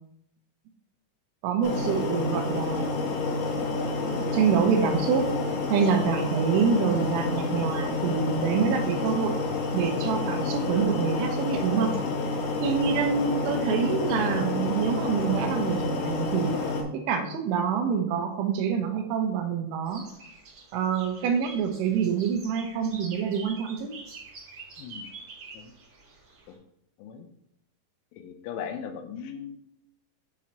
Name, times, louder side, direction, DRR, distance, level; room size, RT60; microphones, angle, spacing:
voice 1, 1.4-3.2 3.5-3.7 4.0-5.3 5.7-9.4 9.7-11.9 12.6-16.6 16.9-20.0 20.7-23.9, right 6 dB, 80° right, 4 dB, 3.2 m, -26 dB
sound 1, 1.6-16.8, left 3 dB, 75° left, 3.0 m, -29 dB
voice 2, 12.9-13.2 24.8-25.1 25.5-25.7 26.5-26.6 27.0-27.3 28.1-29.6, left 7 dB, 90° left, 7 dB, 3.2 m, -39 dB
sound 2, 19.8-26.5, right 3 dB, 35° right, 2.5 m, -46 dB
9.8 x 4.2 x 2.9 m, 0.75 s
omnidirectional pair, 5.5 m